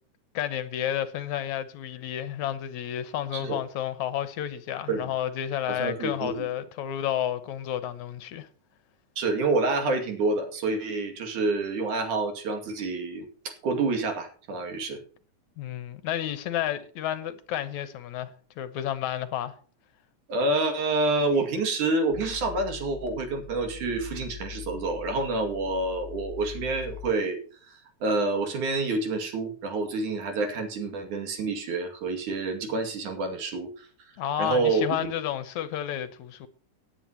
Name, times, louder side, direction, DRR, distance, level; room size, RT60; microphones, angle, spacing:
voice 1, 0.3-8.5 15.6-19.6 34.2-36.5, left 11 dB, 75° left, 2.2 m, -31 dB
voice 2, 5.7-6.5 9.2-15.0 20.3-27.4 27.7-33.9 34.4-35.0, right 3 dB, 75° right, 3.7 m, -28 dB
sound 1, 22.1-27.1, left 7 dB, 5° right, 1.4 m, -42 dB
18.0 x 9.1 x 2.9 m
omnidirectional pair, 3.6 m